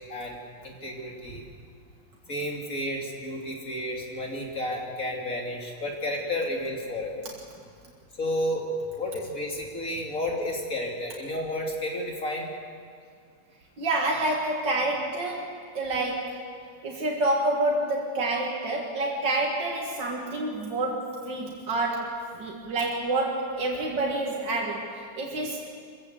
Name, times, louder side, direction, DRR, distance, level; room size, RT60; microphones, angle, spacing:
voice 1, 0.6-1.5 2.3-7.3 8.2-8.7 9.0-12.5, left 1 dB, 50° left, -1 dB, 3.2 m, -31 dB
voice 2, 13.8-16.4 16.8-25.6, right 2 dB, 85° right, -2 dB, 2.8 m, -28 dB
24.5 x 15.5 x 8.1 m, 2.3 s
omnidirectional pair, 1.9 m